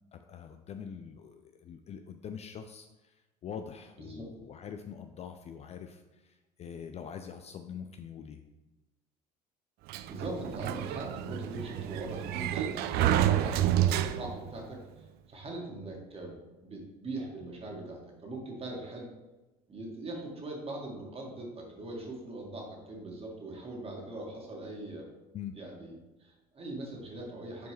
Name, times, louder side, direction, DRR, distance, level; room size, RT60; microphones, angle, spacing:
voice 1, 0.1-8.4 25.3-25.6, left 7 dB, 30° left, 7 dB, 0.4 m, -44 dB
Sliding door, 9.9-14.6, right 12 dB, 50° right, 0.4 m, -29 dB
voice 2, 10.1-16.3 16.6-19.1 19.7-25.1 25.5-27.7, right 2 dB, 30° right, -1 dB, 1.9 m, -41 dB
8.0 x 4.4 x 3.2 m, 1.1 s
hypercardioid pair, 65°, 21 cm